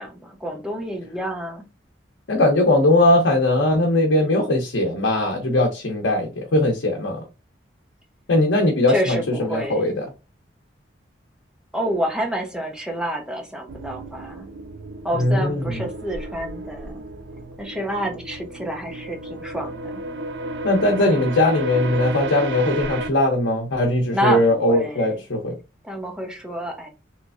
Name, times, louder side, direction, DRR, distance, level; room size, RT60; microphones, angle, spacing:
voice 1, 0.0-1.6 8.9-10.0 11.7-14.5 15.0-17.1 17.6-20.0 21.0-21.2 24.1-25.2 25.8-26.9, equal, 5° right, 0.7 m, -28 dB
voice 2, 2.3-7.2 8.3-9.2 9.5-10.0 15.2-15.7 20.6-25.6, left 1 dB, 85° left, 0.7 m, -19 dB
sound 1, 13.7-23.1, right 1 dB, 70° right, 0.5 m, -32 dB
3.2 x 3.1 x 2.4 m
head